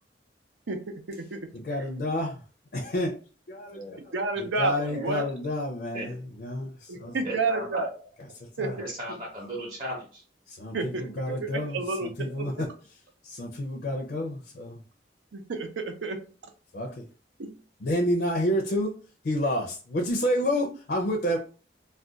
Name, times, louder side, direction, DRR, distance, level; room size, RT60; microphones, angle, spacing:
voice 1, 0.7-1.4 4.1-5.2 6.9-7.9 8.6-8.7 10.7-12.1 12.3-12.6 15.3-16.2 17.4-17.5, right 3 dB, 85° right, 6 dB, 0.6 m, -31 dB
voice 2, 1.5-2.4 2.7-3.1 3.5-7.2 8.4-8.8 10.5-12.7 13.2-14.8 16.7-17.0 17.8-18.9 19.2-21.4, left 1 dB, 55° left, 1 dB, 0.5 m, -29 dB
voice 3, 7.2-7.8 8.8-10.2, right 1 dB, 30° right, -5 dB, 0.7 m, -36 dB
2.4 x 2.2 x 3.7 m, 0.38 s
head